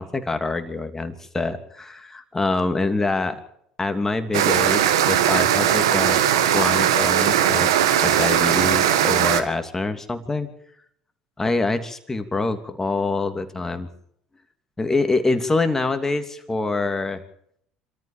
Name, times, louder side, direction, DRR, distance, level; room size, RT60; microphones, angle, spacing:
voice 1, 0.0-3.4 3.8-7.7 8.0-10.5 11.4-13.9 14.8-17.2, left 3 dB, 15° left, 8 dB, 2.9 m, -25 dB
sound 1, 4.3-9.4, right 10 dB, 90° right, 1.7 m, -19 dB
26.0 x 14.0 x 7.4 m, 0.69 s
hypercardioid pair, 80°, 3 cm